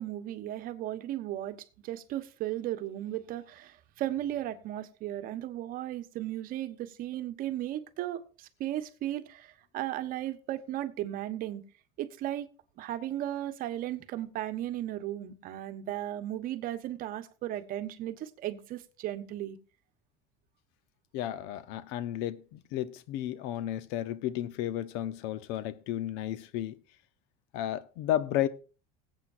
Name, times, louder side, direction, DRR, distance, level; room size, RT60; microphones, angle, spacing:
voice 1, 0.0-11.6 12.0-12.5 12.8-19.6, right 13 dB, 55° right, 1.2 m, -36 dB
voice 2, 21.1-26.7 27.5-28.5, left 12 dB, 75° left, 0.9 m, -33 dB
20.0 x 8.2 x 2.6 m
cardioid pair, 125°, 18 cm